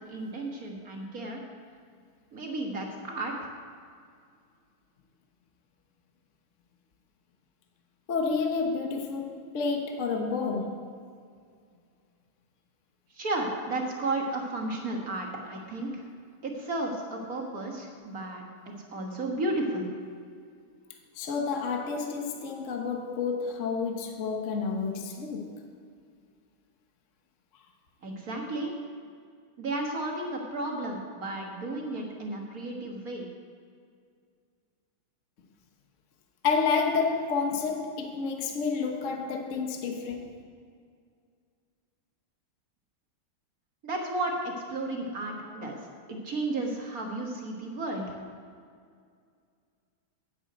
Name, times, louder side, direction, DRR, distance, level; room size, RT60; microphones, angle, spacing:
voice 1, 0.0-1.4 2.3-3.3 13.1-16.0 16.4-19.9 28.0-28.8 29.6-33.3 43.8-45.8 46.1-48.1, right 2 dB, 45° right, 1 dB, 1.7 m, -33 dB
voice 2, 8.1-10.9 21.1-25.5 36.4-40.4, left 5 dB, 45° left, 3 dB, 1.1 m, -30 dB
9.8 x 8.0 x 7.9 m, 2.2 s
omnidirectional pair, 2.4 m